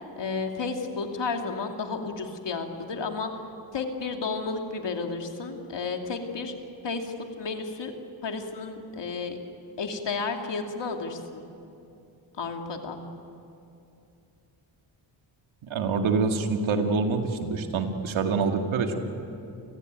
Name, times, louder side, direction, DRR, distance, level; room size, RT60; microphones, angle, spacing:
voice 1, 0.0-3.3 3.7-6.5 6.8-7.9 8.2-9.4 9.8-11.4 12.4-13.0, left 4 dB, 65° left, 3 dB, 2.8 m, -32 dB
voice 2, 15.6-19.0, right 4 dB, 90° right, 4 dB, 2.2 m, -26 dB
30.0 x 16.0 x 9.2 m, 2.7 s
cardioid pair, 65°, 46 cm